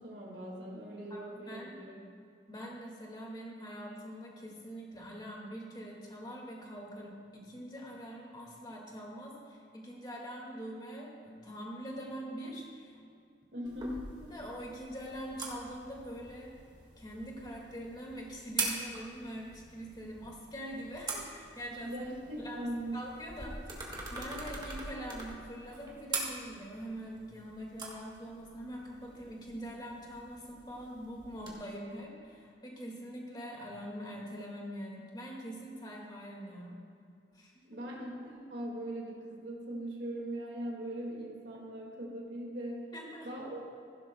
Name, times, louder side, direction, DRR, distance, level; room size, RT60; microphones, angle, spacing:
voice 1, 0.0-2.0 13.5-14.1 21.8-23.0 37.7-42.9 43.2-43.6, right 1 dB, 75° right, -3 dB, 2.0 m, -40 dB
voice 2, 1.1-1.7 2.5-13.0 14.3-16.5 17.0-21.9 22.4-22.6 22.9-36.8 37.3-37.8 42.9-43.3, equal, 25° left, -2 dB, 1.9 m, -44 dB
sound 1, 13.6-31.5, right 3 dB, 25° right, 1.7 m, -43 dB
16.0 x 11.5 x 2.2 m, 2.4 s
head